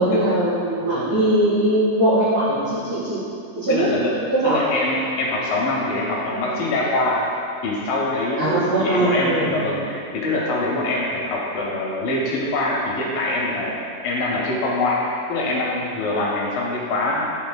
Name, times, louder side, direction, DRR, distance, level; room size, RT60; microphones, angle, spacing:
voice 1, 0.0-3.2 3.5-3.8 4.3-4.6 8.4-9.6, right 1 dB, 55° right, -14 dB, 2.8 m, -20 dB
voice 2, 3.7-4.1 4.4-7.2 7.6-13.8 14.0-15.0 15.3-17.3, left 2 dB, 75° left, -4 dB, 2.2 m, -24 dB
9.5 x 6.9 x 2.2 m, 2.8 s
omnidirectional pair, 4.9 m